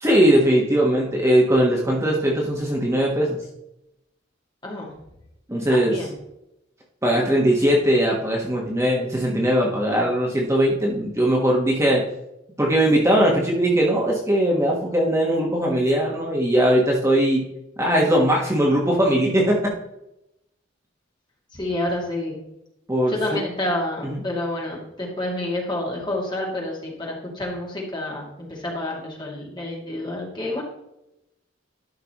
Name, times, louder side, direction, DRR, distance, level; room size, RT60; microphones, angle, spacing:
voice 1, 0.0-3.4 5.5-6.0 7.0-12.0 12.6-17.4 17.8-19.7 22.9-23.4 24.0-24.2, right 1 dB, 15° right, -2 dB, 1.2 m, -20 dB
voice 2, 4.6-4.9 5.7-6.1 21.5-22.4 23.1-30.6, left 1 dB, 25° left, -2 dB, 2.2 m, -29 dB
12.0 x 5.8 x 3.0 m, 0.85 s
head